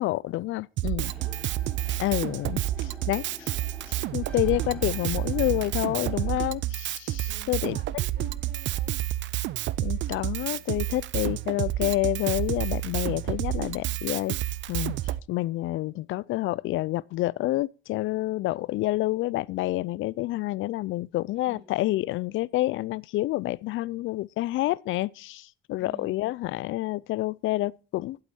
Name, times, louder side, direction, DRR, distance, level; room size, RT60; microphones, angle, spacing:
voice 1, 0.0-1.1 2.0-2.6 3.1-3.5 3.9-7.8 9.8-14.3 14.7-15.0 15.3-28.2, left 17 dB, 80° left, 0.4 m, -28 dB
voice 2, 0.8-1.4 2.8-3.0 6.3-6.4 7.3-9.0 21.3-21.7 25.8-26.1, right 2 dB, 40° right, 4.3 m, -50 dB
Drum kit, 0.8-15.2, right 14 dB, 70° right, 0.4 m, -30 dB
sound 1, 1.0-6.3, left 1 dB, 5° left, 1.7 m, -46 dB
11.0 x 7.9 x 4.3 m
cardioid pair, 90°, 20 cm